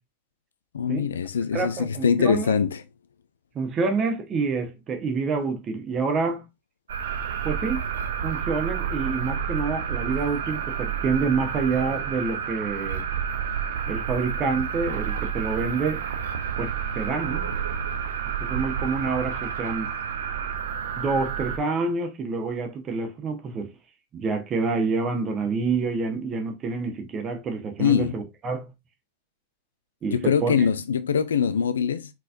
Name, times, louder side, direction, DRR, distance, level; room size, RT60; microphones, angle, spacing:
voice 1, 0.7-2.8 27.8-28.2 30.1-32.1, left 7 dB, 65° left, 0.4 m, -23 dB
voice 2, 1.5-2.5 3.5-6.4 7.4-7.9 8.2-13.0 13.9-16.0 16.6-17.5 18.4-19.9 21.0-23.7 24.1-28.7 30.0-30.5, right 4 dB, 30° right, 1.2 m, -27 dB
sound 1, 6.9-21.6, right 7 dB, 65° right, 0.7 m, -30 dB
4.5 x 4.1 x 2.5 m
figure-of-eight pair, 90°, 0 cm